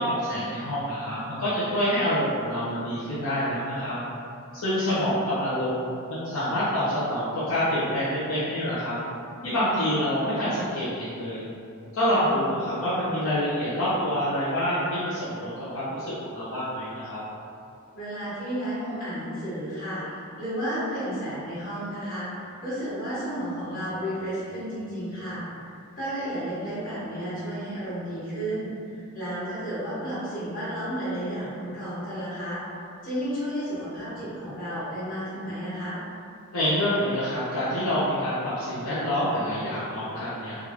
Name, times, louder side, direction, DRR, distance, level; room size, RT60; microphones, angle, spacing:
voice 1, 0.0-4.0 4.5-9.0 9.4-11.4 11.9-17.2 36.5-40.6, equal, 65° left, -12 dB, 0.7 m, -27 dB
voice 2, 12.2-12.6 17.9-25.4 26.0-32.6 33.0-36.0, equal, 40° left, -11 dB, 1.3 m, -32 dB
3.5 x 2.4 x 2.9 m, 2.5 s
head